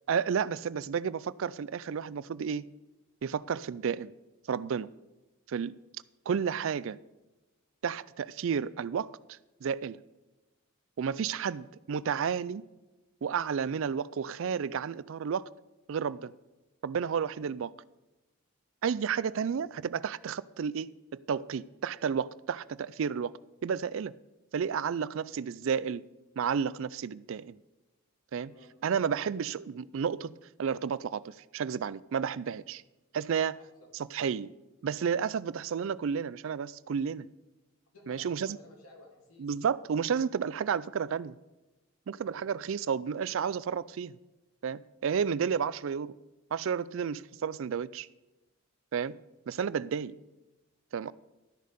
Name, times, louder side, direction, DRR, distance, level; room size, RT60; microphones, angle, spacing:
voice 1, 0.1-2.7 3.2-4.1 4.5-4.9 5.5-5.8 6.3-7.0 7.8-10.0 11.0-12.6 13.2-15.5 15.9-16.3 16.8-17.7 18.8-24.1 24.5-26.0 26.4-27.6 28.3-28.5 28.8-30.3 30.6-32.8 33.1-33.6 34.1-34.5 34.8-37.3 38.1-38.6 39.4-41.3 42.1-44.2 44.6-46.2 46.5-48.1 48.9-49.2 49.5-50.2 50.9-51.1, right 7 dB, 60° right, 0.3 m, -32 dB
voice 2, 11.3-11.6 19.4-19.7 20.5-20.6 28.4-28.7 33.5-33.9 37.9-39.5 42.2-42.5 43.4-43.6, left 1 dB, 85° left, 2.7 m, -56 dB
13.0 x 6.5 x 5.2 m
head